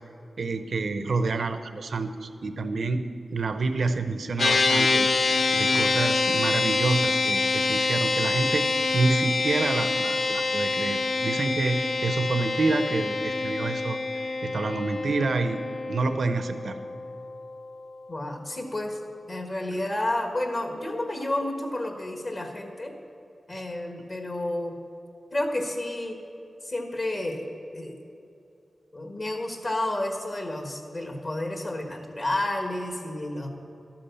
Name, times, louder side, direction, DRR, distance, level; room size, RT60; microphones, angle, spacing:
voice 1, 0.4-3.0 3.3-5.1 5.5-8.7 8.9-15.6 15.9-16.8, right 3 dB, 75° right, 9 dB, 0.8 m, -28 dB
sound 1, 4.4-17.9, left 3 dB, 70° left, 0.7 m, -26 dB
voice 2, 18.1-19.0 19.3-22.9 23.5-24.8 25.3-26.2 26.6-28.0 28.9-33.5, left 1 dB, 45° left, 4 dB, 1.5 m, -31 dB
12.0 x 8.7 x 7.0 m, 2.7 s
wide cardioid pair, 75°, 0 cm